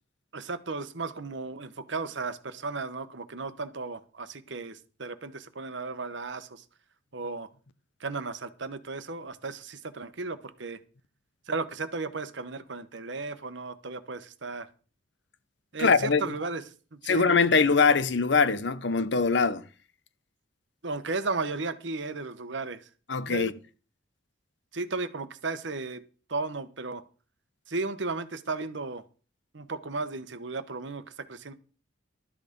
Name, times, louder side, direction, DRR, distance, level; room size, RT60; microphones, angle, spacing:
voice 1, 0.3-6.6 7.1-7.5 8.0-10.8 11.5-14.7 15.7-16.6 16.9-17.3 20.8-22.9 23.3-23.5 24.7-26.0 26.3-27.0 27.7-29.0 29.5-31.5, right 3 dB, 70° right, 1.1 m, -35 dB
voice 2, 15.8-16.3 17.1-19.7 23.1-23.5, left 4 dB, 65° left, 0.8 m, -23 dB
12.5 x 8.7 x 5.3 m
head